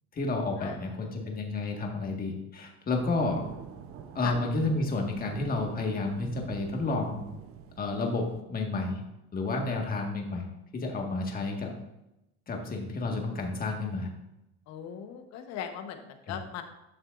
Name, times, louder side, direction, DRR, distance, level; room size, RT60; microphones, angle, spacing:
voice 1, 0.1-3.4 4.1-7.2 7.8-9.0 9.3-10.5 10.7-11.7 12.5-14.1 16.3-16.4, left 3 dB, 30° left, 1 dB, 1.8 m, -31 dB
sound 1, 2.9-8.4, right 7 dB, 45° right, 0.8 m, -44 dB
voice 2, 14.7-16.6, left 9 dB, 55° left, 7 dB, 1.2 m, -39 dB
12.0 x 6.2 x 2.6 m, 0.89 s
supercardioid pair, 120°, 32 cm